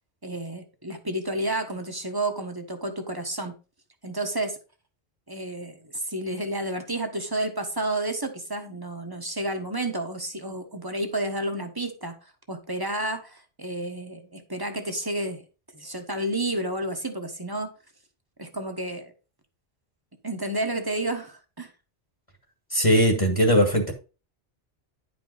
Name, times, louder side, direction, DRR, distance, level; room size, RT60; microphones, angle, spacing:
voice 1, 0.2-3.6 4.0-4.6 5.3-12.2 12.5-15.4 15.7-17.7 18.4-19.1 20.2-21.7, right 1 dB, 20° right, 1.2 m, -31 dB
voice 2, 22.7-23.9, equal, 30° left, 1.7 m, -20 dB
10.5 x 5.3 x 4.0 m
omnidirectional pair, 1.1 m